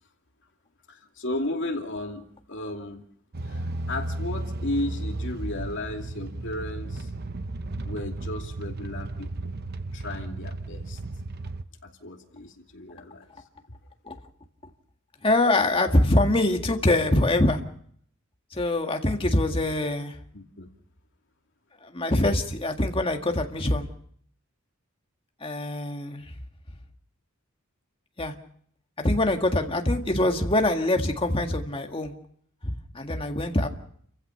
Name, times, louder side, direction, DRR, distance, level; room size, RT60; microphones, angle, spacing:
voice 1, 0.9-3.0 3.4-7.1 7.8-9.6 9.9-11.0 11.8-13.3 20.3-20.7, left 1 dB, 60° left, 3 dB, 2.6 m, -34 dB
sound 1, 3.3-11.6, right 2 dB, 50° right, 0.8 m, -34 dB
voice 2, 15.2-17.6 18.5-20.2 21.8-23.9 25.4-26.4 28.2-28.3 29.0-32.1 32.6-33.7, left 1 dB, 25° left, 4 dB, 1.8 m, -24 dB
29.5 x 15.5 x 5.8 m, 0.64 s
head